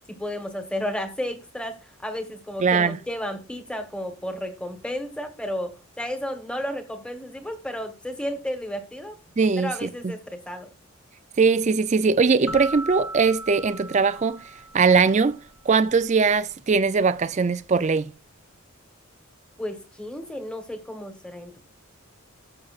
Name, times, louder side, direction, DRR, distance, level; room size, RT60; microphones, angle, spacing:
voice 1, 0.1-9.1 9.6-10.7 19.6-21.7, left 1 dB, 5° left, 1.1 m, -33 dB
voice 2, 2.6-3.0 9.4-10.1 11.4-15.4 15.7-18.1, right 5 dB, 30° right, 0.4 m, -21 dB
sound 1, 12.5-15.2, right 2 dB, 90° left, 1.8 m, -37 dB
13.5 x 6.8 x 2.4 m
head